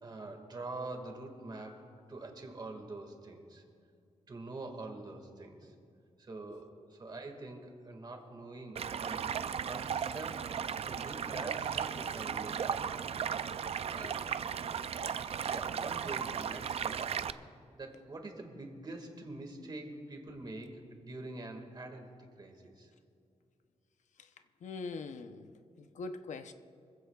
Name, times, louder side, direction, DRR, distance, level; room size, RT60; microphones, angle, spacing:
voice 1, 0.0-3.6 4.3-5.7 6.2-9.3 9.6-10.5 10.9-13.0 13.9-14.6 15.5-17.3 17.7-22.9, right 2 dB, 35° right, 4 dB, 1.9 m, -45 dB
Stream, 8.8-17.3, right 7 dB, 55° right, 0.4 m, -36 dB
voice 2, 24.6-25.5 25.8-26.5, left 3 dB, 85° left, 8 dB, 0.7 m, -42 dB
26.0 x 15.5 x 2.4 m, 2.4 s
wide cardioid pair, 150°, 12 cm